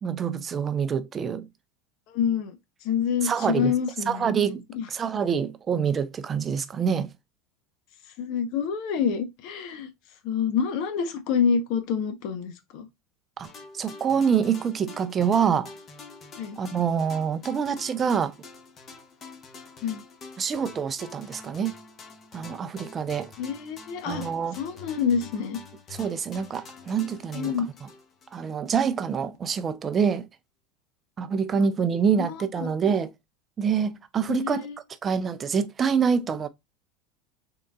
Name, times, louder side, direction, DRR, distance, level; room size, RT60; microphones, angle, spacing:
voice 1, 0.0-1.5 3.2-3.7 4.1-4.6 4.9-7.1 13.4-13.5 13.7-15.7 16.6-18.3 20.4-21.8 22.3-23.3 24.0-24.6 25.9-27.5 28.3-30.2 31.2-33.1 33.6-34.7 35.0-36.5, right 7 dB, 30° right, 0.4 m, -26 dB
voice 2, 2.1-2.6 2.8-4.3 4.7-4.9 8.2-9.9 10.2-12.9 16.4-16.6 19.8-20.0 23.4-24.2 24.6-25.6 27.3-27.7 32.2-32.7 34.3-34.8, left 7 dB, 60° left, 0.9 m, -27 dB
sound 1, 13.4-28.8, left 4 dB, 35° left, 1.2 m, -46 dB
3.8 x 3.8 x 2.3 m
supercardioid pair, 110°, 0 cm